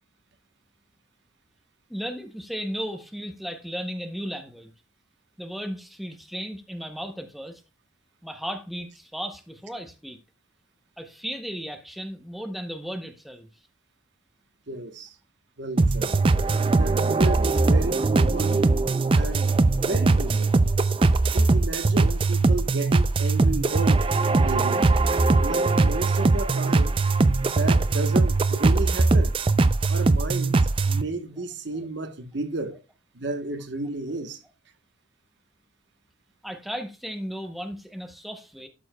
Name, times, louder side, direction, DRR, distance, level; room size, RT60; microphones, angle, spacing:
voice 1, 1.9-4.7 5.4-7.6 8.2-10.2 11.0-13.5 36.4-38.7, equal, ahead, 0.7 m, -35 dB
voice 2, 14.7-15.2 15.6-16.2 16.7-18.6 19.1-20.5 21.3-24.9 25.4-27.0 27.4-29.3 29.9-32.8 33.1-34.4, right 2 dB, 60° right, 1.1 m, -33 dB
sound 1, 15.8-31.0, right 3 dB, 25° right, 0.4 m, -21 dB
12.5 x 6.9 x 2.2 m
head